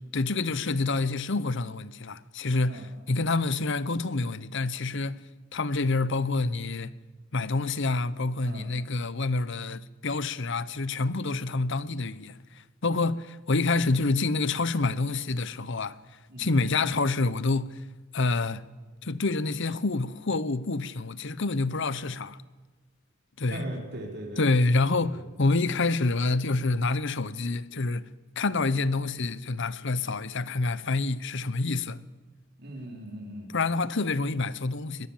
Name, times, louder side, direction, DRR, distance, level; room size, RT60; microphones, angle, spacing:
voice 1, 0.0-5.2 5.5-6.9 7.3-17.9 18.1-18.6 19.0-22.4 23.4-23.7 24.4-28.1 28.4-32.0 33.5-35.1, left 3 dB, 60° left, 0.9 m, -27 dB
voice 2, 23.5-24.4 32.6-33.5, right 1 dB, 55° right, 4.2 m, -38 dB
22.5 x 20.5 x 7.3 m
head